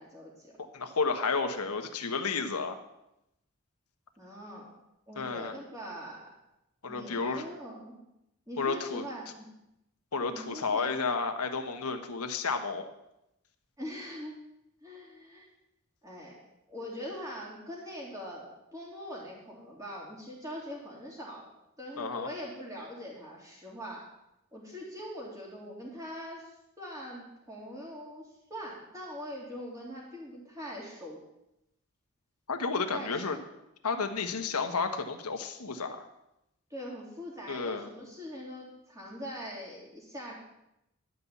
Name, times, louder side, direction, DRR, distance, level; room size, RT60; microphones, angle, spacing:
voice 1, 0.0-0.6 4.2-4.7 5.1-6.3 6.9-7.9 8.5-9.4 10.2-10.9 13.8-14.4 14.8-15.5 16.0-16.4 16.7-21.5 21.8-24.1 24.5-31.2 32.9-33.4 36.7-40.3, equal, 15° right, -4 dB, 3.3 m, -42 dB
voice 2, 0.7-2.8 5.2-5.5 6.8-7.4 8.6-9.1 10.1-12.9 22.0-22.3 32.5-33.4 33.8-36.1 37.5-37.9, left 4 dB, 85° left, 6 dB, 1.3 m, -31 dB
11.5 x 5.7 x 8.3 m, 0.86 s
head